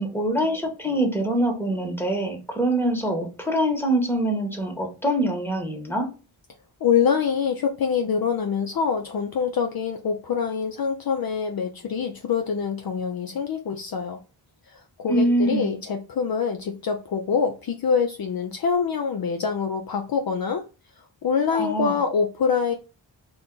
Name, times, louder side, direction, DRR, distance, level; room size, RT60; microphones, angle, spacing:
voice 1, 0.0-6.1 15.1-15.8 21.5-22.0, right 1 dB, 5° left, 1.0 m, -24 dB
voice 2, 6.8-14.2 14.7-20.6 21.0-22.7, left 6 dB, 50° left, 0.5 m, -25 dB
2.4 x 2.3 x 3.8 m
cardioid pair, 50°, 48 cm